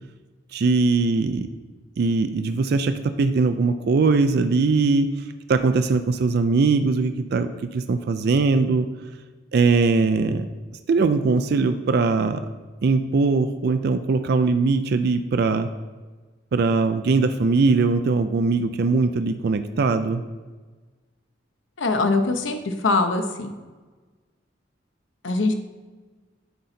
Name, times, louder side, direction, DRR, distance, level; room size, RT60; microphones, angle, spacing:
voice 1, 0.5-1.5 2.0-5.1 5.5-8.9 9.5-10.5 10.9-12.4 12.8-15.7 16.5-20.2, right 4 dB, 55° right, 8 dB, 0.4 m, -21 dB
voice 2, 21.8-23.5 25.2-25.5, left 3 dB, 80° left, 6 dB, 0.8 m, -22 dB
10.0 x 3.9 x 4.2 m, 1.3 s
head